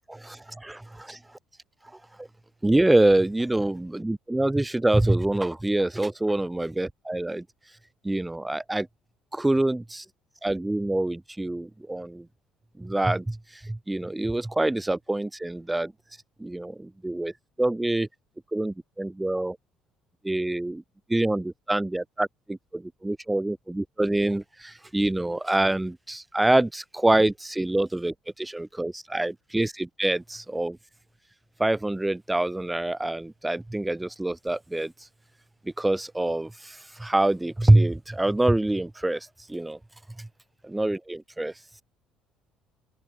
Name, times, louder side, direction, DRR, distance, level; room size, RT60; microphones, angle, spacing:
voice 1, 0.1-1.2 2.2-2.3 2.6-7.4 8.0-8.9 9.3-10.0 10.4-12.3 12.8-15.9 16.4-17.3 17.6-18.1 18.5-19.6 20.2-20.8 21.1-30.8 31.6-34.9 35.6-39.8 40.2-40.3 40.6-41.5, right 1 dB, 10° right, 0.7 m, -25 dB
figure-of-eight pair, 50°, 0 cm